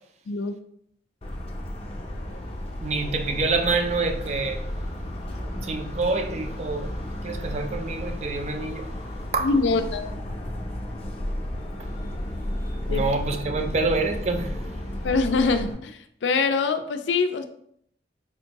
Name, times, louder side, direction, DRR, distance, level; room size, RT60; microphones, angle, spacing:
Motor vehicle (road) / Siren, 1.2-15.7, left 1 dB, 35° left, 0.5 m, -33 dB
voice 1, 2.8-4.6 5.6-6.9 7.2-8.9 9.3-9.5 11.8-11.9 12.9-14.6, right 3 dB, 40° right, 0.4 m, -27 dB
voice 2, 9.4-10.1 12.9-13.0 15.0-17.4, left 4 dB, 85° left, 0.4 m, -24 dB
4.3 x 2.6 x 2.9 m
head